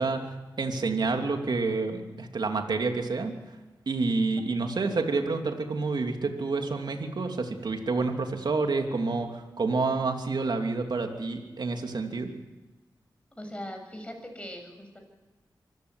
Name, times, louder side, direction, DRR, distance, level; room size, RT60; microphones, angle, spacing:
voice 1, 0.0-3.4 3.9-12.3, right 3 dB, 65° right, 4 dB, 3.0 m, -28 dB
voice 2, 13.3-15.0, equal, 15° left, 4 dB, 7.7 m, -40 dB
25.0 x 15.0 x 9.8 m, 1.2 s
cardioid pair, 50°, 8 cm